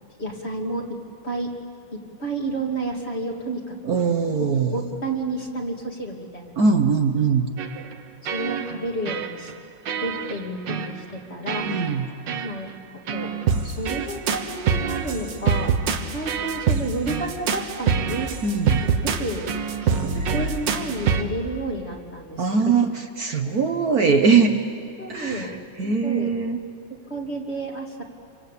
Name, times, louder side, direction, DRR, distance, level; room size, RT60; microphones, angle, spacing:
voice 1, 0.2-1.0 1.2-1.5 1.9-4.0 4.7-6.5 7.7-7.9 8.3-9.5 10.0-11.7 12.4-13.3 13.6-15.7 16.1-18.3 18.8-22.9 25.0-25.5 25.8-26.3 26.9-28.0, right 2 dB, 30° left, 0 dB, 2.9 m, -31 dB
voice 2, 3.8-4.7 6.6-7.5 11.7-12.1 18.4-18.8 22.4-24.6 25.1-25.5 25.8-26.6, right 5 dB, 55° right, 5 dB, 1.6 m, -21 dB
sound 1, 7.6-7.9 8.2-8.8 9.1-9.5 9.9-10.4 10.7-10.9 11.5-12.0 12.3-12.5 13.1-21.2, right 6 dB, 70° right, 1.9 m, -25 dB
28.0 x 24.5 x 8.5 m, 2.5 s
omnidirectional pair, 2.1 m